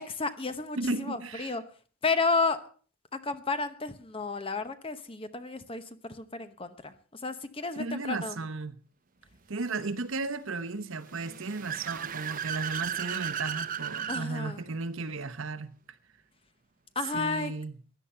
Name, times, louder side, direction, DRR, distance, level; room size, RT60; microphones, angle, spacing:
voice 1, 0.0-1.6 2.0-2.7 3.1-8.3 14.1-14.6 16.9-17.5, left 4 dB, 25° left, 0.9 m, -32 dB
voice 2, 0.8-1.5 7.8-8.7 9.5-15.7 17.1-17.8, right 3 dB, 65° right, 1.0 m, -34 dB
Car / Accelerating revving vroom, 11.0-14.3, right 8 dB, 40° right, 0.9 m, -35 dB
16.0 x 11.0 x 5.6 m
head